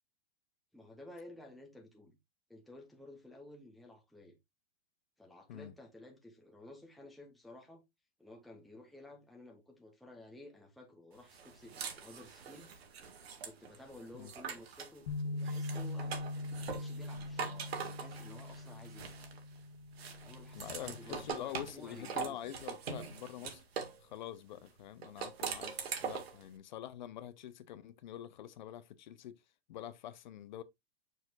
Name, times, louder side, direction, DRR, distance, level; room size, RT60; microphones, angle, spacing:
voice 1, 0.7-2.2 2.5-4.3 5.2-7.8 8.2-12.7 13.4-16.2 16.5-19.1 20.2-22.4, left 1 dB, ahead, 0.8 m, -54 dB
sound 1, 11.3-15.0 15.4-19.6 20.0-24.0 25.0-26.4, right 6 dB, 75° right, 2.0 m, -43 dB
Bass guitar, 15.1-21.3, left 2 dB, 85° left, 1.5 m, -42 dB
voice 2, 20.5-23.6 24.0-29.4 29.7-30.6, left 11 dB, 45° left, 0.7 m, -46 dB
6.7 x 6.4 x 2.4 m
hypercardioid pair, 160°, 31 cm